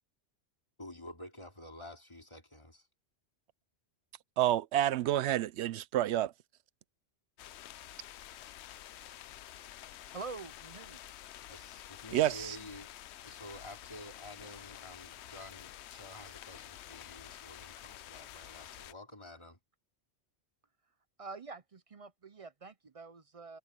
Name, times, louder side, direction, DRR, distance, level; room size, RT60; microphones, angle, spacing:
voice 1, 0.8-2.9 11.5-12.9 13.2-19.6, left 1 dB, 25° left, 3.0 m, -50 dB
voice 2, 4.4-6.3 12.1-12.6, right 13 dB, 75° right, 0.8 m, -29 dB
sound 1, 7.4-18.9, left 12 dB, 75° left, 0.8 m, -49 dB
voice 3, 10.1-11.0 21.2-23.6, right 4 dB, 40° right, 0.5 m, -46 dB
omnidirectional pair, 1.2 m